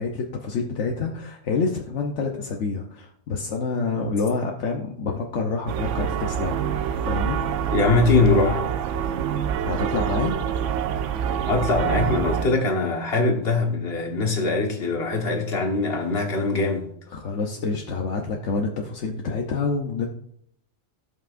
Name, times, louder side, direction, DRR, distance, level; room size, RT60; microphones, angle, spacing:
voice 1, 0.0-6.6 7.0-7.4 9.6-10.4 17.1-20.1, left 4 dB, 80° left, 1.1 m, -27 dB
sound 1, 5.7-12.5, right 8 dB, 85° right, 1.0 m, -26 dB
voice 2, 7.7-8.7 11.5-16.9, left 3 dB, 60° left, 1.5 m, -22 dB
16.0 x 5.6 x 2.5 m
omnidirectional pair, 1.2 m